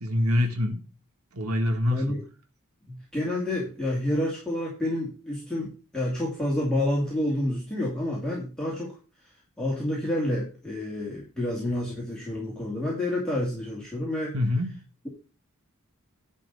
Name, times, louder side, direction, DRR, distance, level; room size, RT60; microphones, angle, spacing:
voice 1, 0.0-0.8 1.3-2.2 14.3-14.8, left 1 dB, 80° right, 1.6 m, -25 dB
voice 2, 1.9-2.2 2.9-9.0 9.6-14.4, left 1 dB, 5° left, 2.7 m, -29 dB
11.0 x 4.3 x 6.8 m
head